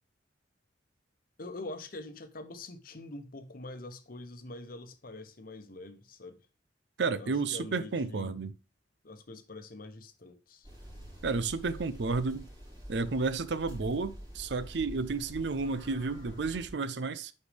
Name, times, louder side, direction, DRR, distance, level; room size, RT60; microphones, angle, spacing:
voice 1, 1.4-6.4 7.2-8.4 9.0-10.7, left 2 dB, 50° left, 0.9 m, -44 dB
voice 2, 7.0-8.5 11.2-12.5 12.9-17.3, right 4 dB, 65° right, 0.5 m, -32 dB
sound 1, 10.6-16.7, equal, 25° right, 4.0 m, -46 dB
10.0 x 4.3 x 3.4 m
head